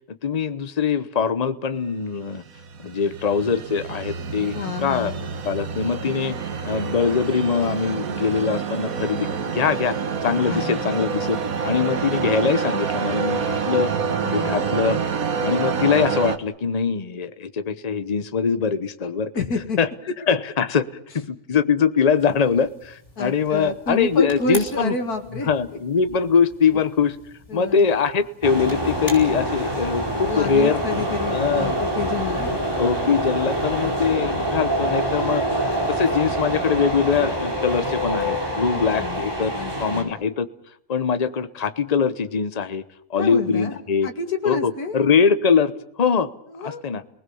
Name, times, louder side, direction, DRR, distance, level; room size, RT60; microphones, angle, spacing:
voice 1, 0.2-2.4 2.8-5.1 5.4-10.0 10.2-13.9 14.3-15.0 15.4-19.3 19.8-19.9 20.3-20.8 21.1-24.9 25.5-27.2 27.5-30.8 31.3-31.7 32.8-35.4 35.9-39.5 39.8-40.5 40.9-42.8 43.1-44.1 44.4-46.3 46.6-47.0, left 6 dB, 30° left, 12 dB, 1.0 m, -22 dB
sound 1, 2.3-16.4, right 6 dB, 70° right, 1.7 m, -27 dB
voice 2, 4.5-5.2 10.4-11.1 14.2-14.7 19.3-19.8 23.2-25.5 27.5-27.9 30.3-32.5 38.7-39.2 39.5-40.1 43.1-43.8 44.0-45.0 46.5-46.8, left 4 dB, 85° left, 5 dB, 2.5 m, -29 dB
sound 2, 22.2-34.1, left 1 dB, 50° left, 6.7 m, -44 dB
sound 3, 28.4-40.0, right 1 dB, 15° right, 4.2 m, -25 dB
30.0 x 19.5 x 7.0 m, 0.71 s
omnidirectional pair, 1.6 m